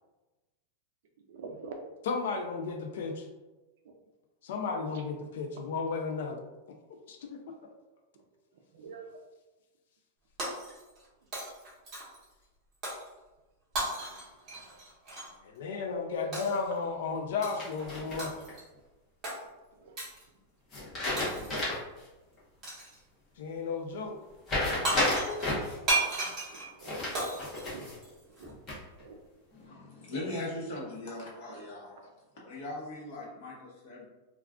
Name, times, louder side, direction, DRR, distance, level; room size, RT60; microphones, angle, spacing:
voice 1, 1.3-1.7 3.9-4.0 8.7-9.0 14.5-14.6 21.4-21.5 25.9-26.1 26.5-27.0 27.7-27.9 28.4-28.5 29.0-29.2 32.0-32.1, right 5 dB, 55° right, 3 dB, 0.4 m, -46 dB
voice 2, 2.0-3.3 4.4-6.4 6.9-7.4 15.4-18.3 23.4-24.2 25.3-25.4, left 4 dB, 65° left, 3 dB, 0.4 m, -34 dB
Shatter, 10.4-11.1 11.3-12.3 12.8-13.1 13.7-15.3 16.3-16.7 17.4-17.7 18.2-18.7 19.2-19.4 20.0-20.2 21.2-21.7 22.6-23.0 24.5-24.6 24.8-28.4, right 2 dB, 20° right, 0.9 m, -35 dB
sound 1, 17.6-18.5 20.7-22.0 22.4-22.5 24.5-25.8 26.8-28.0 28.4-29.0, left 1 dB, 15° left, 0.8 m, -32 dB
voice 3, 29.5-32.1 32.4-34.0, left 1 dB, 45° left, -4 dB, 0.9 m, -40 dB
2.3 x 2.3 x 3.5 m, 1.1 s
supercardioid pair, 175°, 0 cm